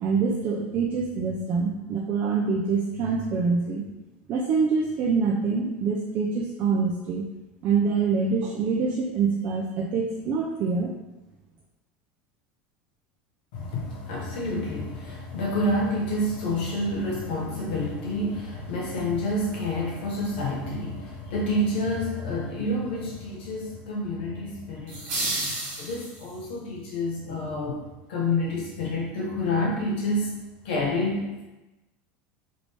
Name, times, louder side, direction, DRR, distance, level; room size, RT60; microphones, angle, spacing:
voice 1, 0.0-3.8 4.3-7.3 7.6-10.9, right 5 dB, 35° right, -1 dB, 0.4 m, -25 dB
voice 2, 13.5-25.2 25.8-27.8 28.1-30.3 30.6-31.4, left 1 dB, 80° left, -3 dB, 1.1 m, -28 dB
sound 1, 24.9-26.5, right 2 dB, 60° right, 1.2 m, -31 dB
3.2 x 2.5 x 3.4 m, 1.0 s
supercardioid pair, 160°, 5 cm